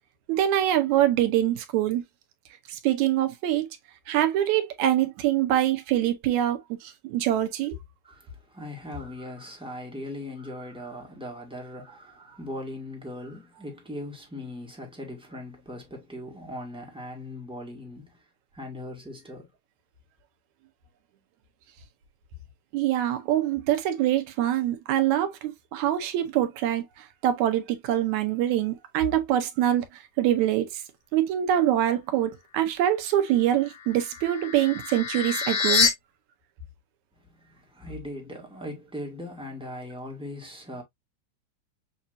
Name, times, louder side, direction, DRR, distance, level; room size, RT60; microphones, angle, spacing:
voice 1, 0.3-2.0 2.7-3.7 4.1-7.8 22.7-30.8 31.1-35.9, right 12 dB, 80° right, 2.2 m, -24 dB
voice 2, 8.0-18.2 18.5-19.5 37.1-40.8, left 1 dB, 5° right, 1.1 m, -39 dB
sound 1, 33.6-35.9, left 5 dB, 90° left, 0.9 m, -26 dB
7.1 x 2.7 x 2.6 m
omnidirectional pair, 3.4 m